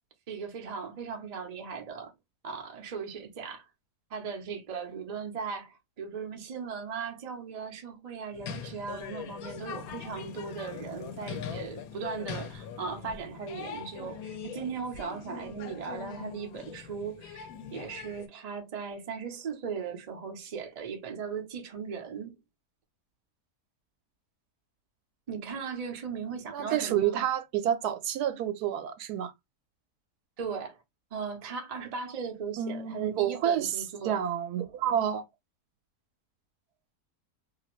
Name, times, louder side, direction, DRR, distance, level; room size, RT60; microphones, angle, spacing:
voice 1, 0.3-2.1 2.4-3.7 4.1-22.4 25.3-27.2 30.4-30.8 31.1-34.2, right 6 dB, 50° right, 0.5 m, -38 dB
sound 1, 8.3-18.3, left 7 dB, 70° left, 1.0 m, -42 dB
voice 2, 26.5-29.3 32.6-33.7 34.0-35.2, right 10 dB, 80° right, 1.1 m, -29 dB
2.8 x 2.5 x 2.9 m
omnidirectional pair, 1.7 m